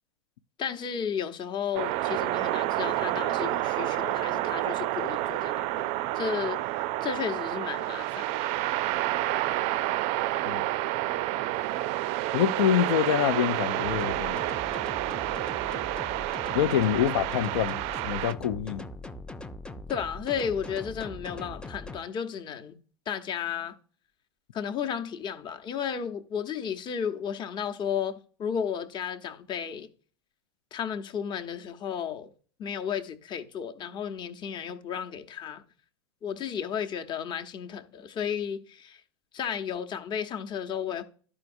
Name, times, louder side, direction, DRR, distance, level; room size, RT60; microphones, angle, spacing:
voice 1, 0.6-8.5 19.9-22.8 23.1-23.7 24.5-29.9 30.7-32.3 32.6-35.6 36.2-39.0 39.3-41.0, left 8 dB, 30° left, 0.9 m, -33 dB
sound 1, 1.7-18.3, right 16 dB, 45° right, 0.4 m, -29 dB
voice 2, 12.3-14.4 16.5-18.9, left 9 dB, 70° left, 0.5 m, -26 dB
sound 2, 13.8-22.0, left 1 dB, 5° left, 0.5 m, -41 dB
12.0 x 4.8 x 2.6 m
hypercardioid pair, 100°, 15 cm